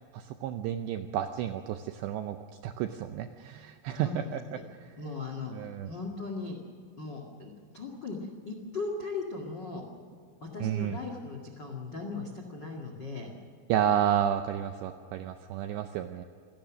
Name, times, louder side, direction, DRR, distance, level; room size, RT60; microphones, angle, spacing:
voice 1, 0.1-2.4 2.6-5.0 5.5-5.9 10.6-11.0 13.7-16.3, right 10 dB, 85° right, 8 dB, 2.5 m, -31 dB
voice 2, 3.9-4.6 5.0-6.6 7.0-9.8 10.4-13.3, left 3 dB, 85° left, 3 dB, 0.9 m, -38 dB
27.0 x 18.0 x 6.3 m, 2.3 s
omnidirectional pair, 5.9 m